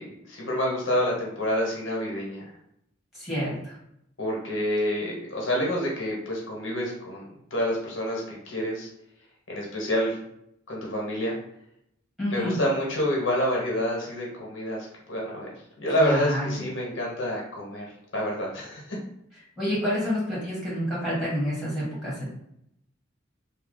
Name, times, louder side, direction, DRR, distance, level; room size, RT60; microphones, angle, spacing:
voice 1, 0.0-2.5 4.2-7.2 7.5-8.9 9.5-10.1 10.7-11.3 12.3-15.5 15.8-17.9 18.1-19.0, equal, 80° left, -3 dB, 1.1 m, -28 dB
voice 2, 3.2-3.7 12.2-12.6 16.0-16.5 19.6-22.3, equal, ahead, -8 dB, 1.5 m, -28 dB
2.9 x 2.2 x 3.9 m, 0.77 s
head